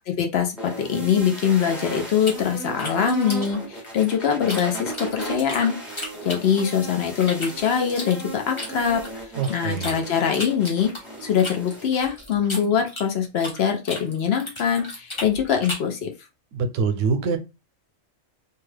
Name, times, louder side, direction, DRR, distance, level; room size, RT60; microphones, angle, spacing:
voice 1, 0.2-9.0 9.5-10.9 11.2-16.1, left 8 dB, 65° left, 0.8 m, -23 dB
sound 1, 0.6-11.9, right 2 dB, ahead, 0.9 m, -36 dB
sound 2, 2.2-4.6 4.9-6.8 7.2-10.0 10.3-13.6 13.9-15.9, left 1 dB, 25° left, 1.0 m, -35 dB
voice 2, 9.4-10.0 16.5-17.4, right 5 dB, 90° right, 0.9 m, -24 dB
2.7 x 2.3 x 3.2 m
omnidirectional pair, 1.3 m